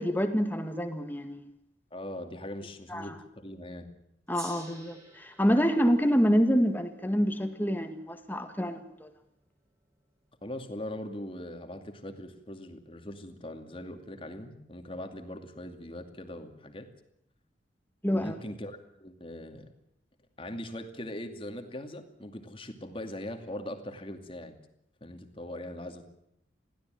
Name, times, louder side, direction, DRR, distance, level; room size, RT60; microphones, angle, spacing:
voice 1, 0.0-1.5 2.9-3.2 4.3-9.1 18.0-18.3, equal, 10° left, 7 dB, 1.9 m, -27 dB
voice 2, 1.9-3.9 10.4-16.9 18.1-19.7 20.4-24.6 25.0-26.0, left 1 dB, 30° left, 6 dB, 2.4 m, -41 dB
Gong, 4.3-9.1, right 2 dB, 15° right, 5.5 m, -51 dB
22.0 x 16.0 x 9.2 m, 0.77 s
head